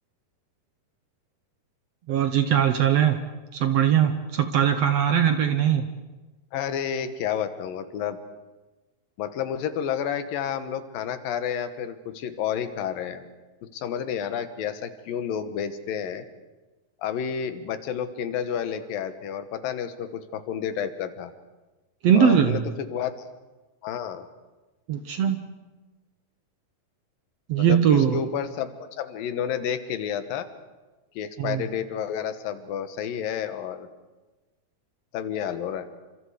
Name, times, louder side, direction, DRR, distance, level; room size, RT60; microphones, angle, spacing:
voice 1, 2.1-3.2 3.5-5.9 22.0-22.6 24.9-25.4 27.5-28.2 31.4-31.6, right 9 dB, 65° right, 8 dB, 1.7 m, -20 dB
voice 2, 6.5-8.2 9.2-13.3 13.7-16.3 17.0-21.3 22.1-23.2 23.8-24.3 27.6-30.5 31.2-33.9 35.1-35.9, left 8 dB, 85° left, 10 dB, 3.0 m, -30 dB
29.5 x 26.0 x 4.9 m, 1.2 s
omnidirectional pair, 3.9 m